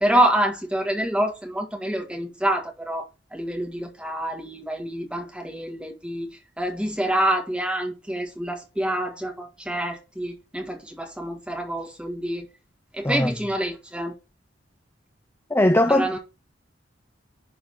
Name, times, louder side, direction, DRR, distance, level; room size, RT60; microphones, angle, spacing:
voice 1, 0.0-3.1 3.3-6.3 6.6-12.5 12.9-14.2 15.9-16.2, right 1 dB, 5° right, 1.7 m, -26 dB
voice 2, 15.5-16.2, left 1 dB, 10° left, 0.5 m, -20 dB
11.0 x 3.9 x 4.1 m
head